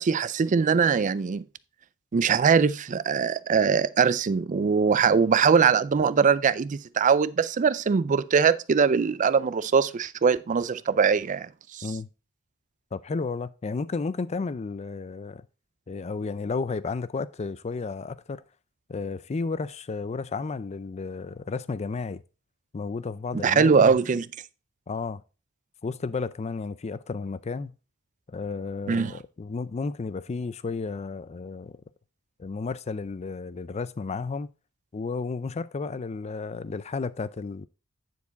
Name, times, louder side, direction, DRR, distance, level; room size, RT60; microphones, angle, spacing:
voice 1, 0.0-1.4 2.1-11.8 23.4-24.2 28.9-29.1, right 6 dB, 35° right, 0.4 m, -22 dB
voice 2, 12.9-15.5 15.9-18.4 18.9-22.2 22.7-24.0 24.9-25.2 25.8-27.7 28.3-31.8 32.4-34.5 34.9-37.7, left 4 dB, 30° left, 0.4 m, -32 dB
9.5 x 4.6 x 4.0 m
head